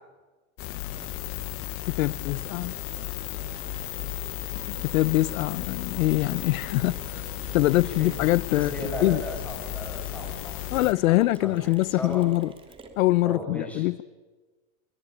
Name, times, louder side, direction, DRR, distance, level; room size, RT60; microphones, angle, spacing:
sound 1, 0.6-10.9, left 16 dB, 35° left, 0.9 m, -35 dB
Mechanisms, 1.0-13.3, right 3 dB, 15° right, 3.0 m, -49 dB
voice 1, 1.9-2.7 4.7-7.2 7.5-9.2 10.7-12.5 13.0-14.0, left 17 dB, 85° left, 0.8 m, -24 dB
voice 2, 7.8-8.2 8.5-10.5 11.1-11.2 11.4-11.7 12.0-12.2 13.2-13.9, equal, 5° left, 7.5 m, -37 dB
24.0 x 22.5 x 9.9 m
supercardioid pair, 150°, 40 cm